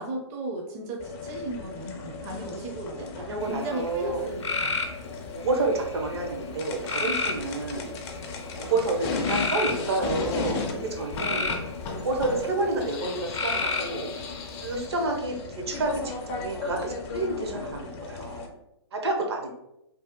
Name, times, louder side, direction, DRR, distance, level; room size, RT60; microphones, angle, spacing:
voice 1, 0.0-4.8 8.5-8.9 11.3-11.7, right 2 dB, 35° right, -1 dB, 0.5 m, -36 dB
sound 1, 1.0-18.5, left 4 dB, 25° left, 0.4 m, -35 dB
voice 2, 3.2-4.2 5.3-7.9 8.6-11.5 11.9-14.1 14.6-18.5 18.9-19.5, right 2 dB, 65° right, 2 dB, 0.8 m, -29 dB
sound 2, 3.4-3.9 4.4-5.0 5.7-6.2 6.9-7.4 8.1-8.5 9.2-9.7 10.8-11.7 13.3-14.0, left 3 dB, 85° left, 0.5 m, -29 dB
2.7 x 2.1 x 3.6 m, 0.85 s
hypercardioid pair, 125°, 15 cm